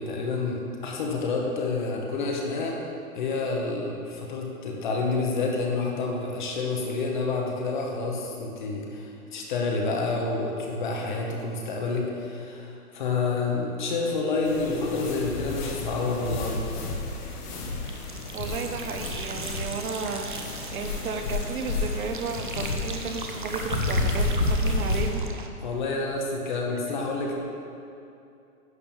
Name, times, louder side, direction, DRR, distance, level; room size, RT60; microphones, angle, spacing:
voice 1, 0.0-2.8 3.1-16.7 25.6-27.3, left 3 dB, 30° left, 0 dB, 1.0 m, -29 dB
sound 1, 14.4-25.1, left 2 dB, 90° left, 2.1 m, -30 dB
sound 2, 17.9-25.5, right 4 dB, 35° right, 0.4 m, -39 dB
voice 2, 18.3-20.4 20.7-25.2, right 4 dB, 70° right, 5 dB, 1.0 m, -33 dB
10.5 x 3.6 x 7.1 m, 2.7 s
hypercardioid pair, 170°, 45 cm